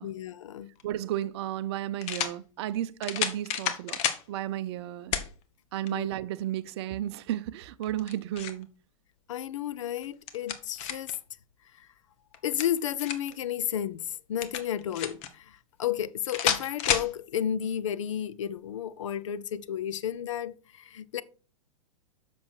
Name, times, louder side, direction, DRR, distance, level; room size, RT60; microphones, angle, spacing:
voice 1, 0.0-0.7 5.9-6.1 9.3-11.1 11.8-11.9 12.4-21.2, left 10 dB, 65° left, 0.6 m, -32 dB
sound 1, 0.8-0.9 2.0-2.4 3.0-4.2 5.1-5.3 5.9-6.0 7.8-8.6 10.0-11.2 12.3-13.3 14.4-15.3 16.3-17.1, left 9 dB, 40° left, 1.1 m, -30 dB
voice 2, 0.8-4.0 4.3-5.2 5.7-8.7, right 12 dB, 50° right, 0.6 m, -33 dB
7.4 x 6.1 x 4.5 m
figure-of-eight pair, 100°, 17 cm